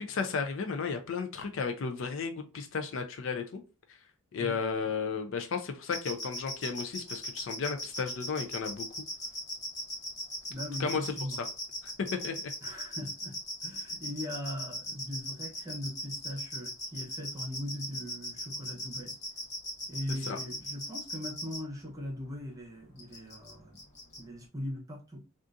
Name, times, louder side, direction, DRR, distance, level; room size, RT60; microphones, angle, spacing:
voice 1, 0.0-3.6 3.9-4.0 4.3-8.9 10.8-11.1 11.8-12.4 20.3-20.4, left 5 dB, 60° left, 6 dB, 0.4 m, -34 dB
sound 1, 5.9-21.6 23.0-23.5 23.8-24.2, equal, 30° left, 1.0 m, -38 dB
voice 2, 10.5-11.4 12.6-19.1 19.9-23.8 24.2-25.2, left 1 dB, 15° right, -3 dB, 0.8 m, -40 dB
3.7 x 2.4 x 2.5 m, 0.33 s
head